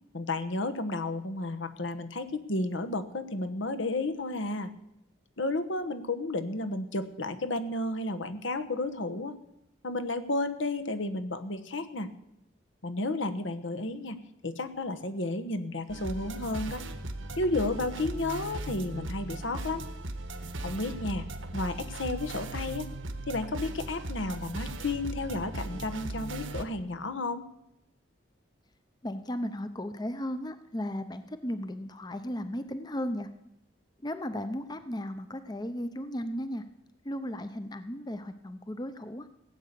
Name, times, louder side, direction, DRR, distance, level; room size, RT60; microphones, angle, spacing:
voice 1, 0.1-4.7 5.4-9.4 9.8-12.1 12.8-14.2 14.4-16.8 17.4-19.8 20.6-21.2 21.5-22.9 23.3-27.5, left 2 dB, 80° left, 9 dB, 1.1 m, -32 dB
sound 1, 15.9-26.6, right 2 dB, 90° right, 1.4 m, -38 dB
voice 2, 29.0-33.3 34.0-36.6 37.0-39.3, equal, 20° left, 10 dB, 0.6 m, -35 dB
16.5 x 8.5 x 6.8 m, 0.84 s
head